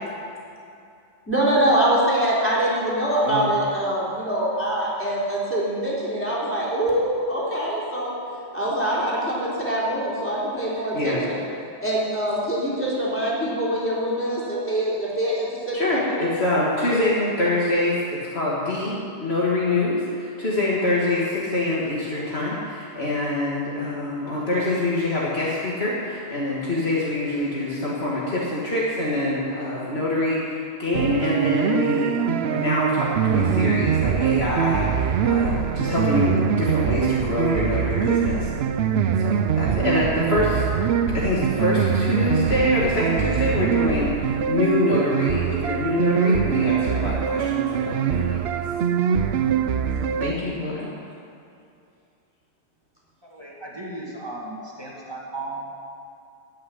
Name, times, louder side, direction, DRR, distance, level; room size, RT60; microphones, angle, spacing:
voice 1, 1.3-8.1 8.5-11.4 11.8-16.2, right 1 dB, 10° left, -7 dB, 3.8 m, -24 dB
voice 2, 10.9-11.3 15.7-38.5 39.1-40.6 41.1-48.7 50.0-50.9, left 2 dB, 65° left, -6 dB, 2.2 m, -25 dB
sound 1, 30.9-50.3, right 8 dB, 70° right, 0.8 m, -23 dB
voice 3, 53.2-55.7, right 2 dB, 20° right, -4 dB, 2.3 m, -35 dB
15.0 x 6.4 x 9.8 m, 2.5 s
omnidirectional pair, 1.1 m